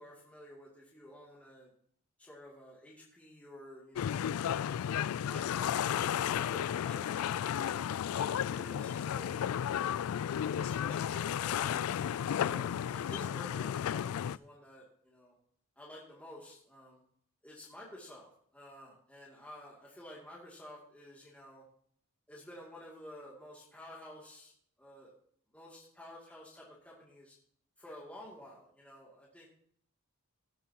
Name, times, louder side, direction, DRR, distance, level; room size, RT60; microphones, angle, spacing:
voice 1, 0.0-1.7 2.2-4.2 4.6-7.8 8.1-9.8 10.4-15.3 15.8-17.0 17.4-21.6 22.3-24.5 24.8-25.1 25.5-27.3 27.8-29.5, left 1 dB, 5° left, -6 dB, 2.5 m, -52 dB
sound 1, 4.0-14.4, left 9 dB, 75° left, 0.3 m, -33 dB
17.5 x 8.5 x 2.9 m, 0.62 s
head